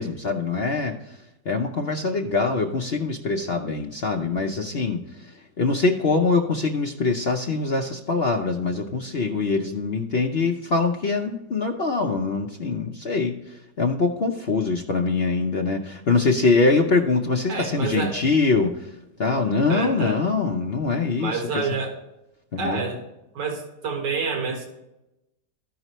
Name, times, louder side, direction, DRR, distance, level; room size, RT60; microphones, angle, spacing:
voice 1, 0.0-21.8 22.5-22.8, left 4 dB, 55° left, 2 dB, 0.7 m, -24 dB
voice 2, 17.5-18.2 19.7-20.2 21.2-22.0 22.6-23.0 23.4-24.7, right 4 dB, 80° right, 2 dB, 2.1 m, -28 dB
15.0 x 5.4 x 3.0 m, 0.92 s
omnidirectional pair, 1.9 m